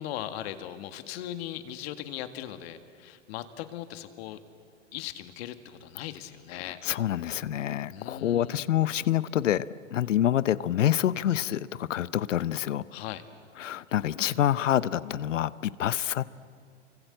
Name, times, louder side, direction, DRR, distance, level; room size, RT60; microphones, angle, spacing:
voice 1, 0.0-4.4 4.9-6.8 7.9-8.6 12.9-13.2, left 12 dB, 55° left, 10 dB, 1.9 m, -39 dB
voice 2, 6.6-9.6 9.9-12.8 13.6-16.2, left 11 dB, 80° left, 18 dB, 0.8 m, -27 dB
28.5 x 25.0 x 7.9 m, 2.2 s
hypercardioid pair, 115°, 37 cm